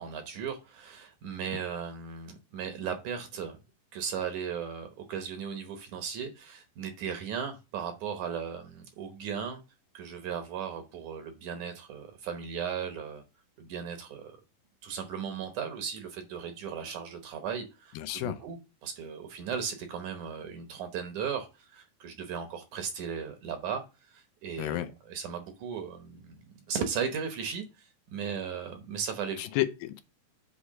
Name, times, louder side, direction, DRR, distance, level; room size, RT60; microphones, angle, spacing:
voice 1, 0.0-3.6 3.9-9.6 9.9-13.2 13.6-14.4 14.8-23.8 24.1-29.4, right 7 dB, 70° right, 2.1 m, -36 dB
voice 2, 17.9-18.4 24.6-24.9 29.4-30.0, left 14 dB, 80° left, 2.4 m, -31 dB
8.3 x 3.1 x 6.4 m
omnidirectional pair, 4.1 m